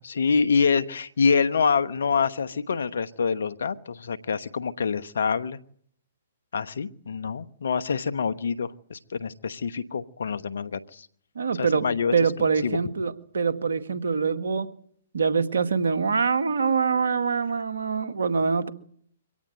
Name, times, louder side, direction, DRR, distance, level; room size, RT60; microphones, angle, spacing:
voice 1, 0.0-5.6 6.5-11.1 11.6-12.1 12.6-12.8, left 5 dB, 75° left, 14 dB, 1.2 m, -26 dB
voice 2, 11.4-11.9 12.1-14.7 15.1-18.7, right 5 dB, 75° right, 9 dB, 1.9 m, -24 dB
24.0 x 17.5 x 8.9 m, 0.65 s
hypercardioid pair, 130°, 0 cm